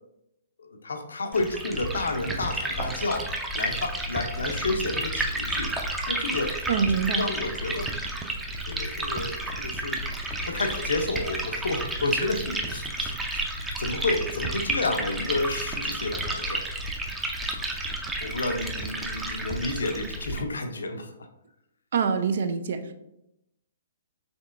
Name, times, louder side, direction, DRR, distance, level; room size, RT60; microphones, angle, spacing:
voice 1, 0.6-3.3 3.6-5.7 6.1-6.6 7.1-7.9 8.7-10.0 10.4-16.6 18.2-21.1, left 2 dB, 75° left, 6 dB, 0.6 m, -30 dB
Liquid, 1.3-20.4, right 1 dB, 10° right, 0.6 m, -31 dB
voice 2, 6.7-7.2 21.9-22.9, right 6 dB, 60° right, 9 dB, 0.5 m, -25 dB
5.2 x 3.5 x 2.5 m, 0.86 s
figure-of-eight pair, 125°, 0 cm